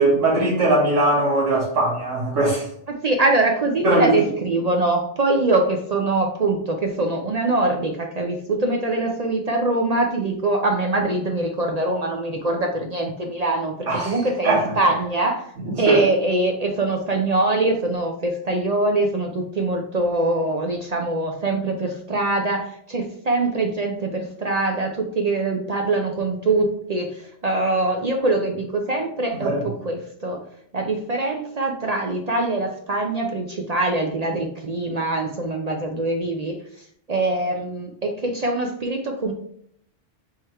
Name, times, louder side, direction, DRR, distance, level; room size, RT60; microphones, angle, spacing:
voice 1, 0.0-2.7 3.8-4.1 13.9-14.1 14.4-14.6 15.6-16.0 29.4-29.6, right 2 dB, 75° right, -6 dB, 1.7 m, -20 dB
voice 2, 2.9-15.4 15.8-29.5 29.8-30.4 30.7-36.5 37.1-39.3, right 2 dB, 50° right, 2 dB, 0.5 m, -23 dB
3.7 x 3.1 x 4.5 m, 0.67 s
omnidirectional pair, 1.3 m